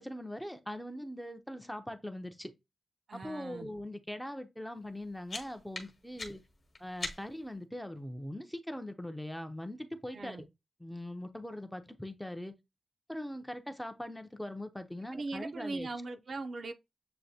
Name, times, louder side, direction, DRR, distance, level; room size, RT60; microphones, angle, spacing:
voice 1, 0.0-2.5 3.1-6.4 6.8-10.4 10.8-12.5 13.1-15.9, left 1 dB, 5° left, 0.5 m, -41 dB
voice 2, 3.1-3.7 10.1-10.4 15.1-16.7, right 3 dB, 50° right, 0.4 m, -40 dB
sound 1, 4.8-7.5, left 3 dB, 35° left, 1.1 m, -44 dB
7.6 x 2.6 x 2.7 m
wide cardioid pair, 165°, 0 cm